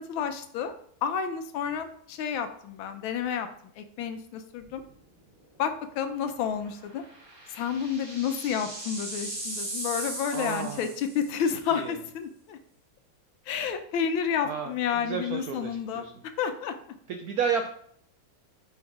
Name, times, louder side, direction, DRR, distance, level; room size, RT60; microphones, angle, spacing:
voice 1, 0.1-0.7 1.0-3.5 3.8-4.8 5.6-7.0 7.5-12.6 13.5-16.0 16.4-16.8, left 7 dB, 85° left, 8 dB, 1.5 m, -30 dB
sound 1, 4.6-4.9 5.3-5.4 6.8-11.5, right 1 dB, 40° right, 2.2 m, -38 dB
voice 2, 10.3-10.9 11.7-12.0 14.4-16.1 17.1-17.7, right 6 dB, 80° right, 5 dB, 0.8 m, -32 dB
4.6 x 4.4 x 4.8 m, 0.64 s
omnidirectional pair, 2.1 m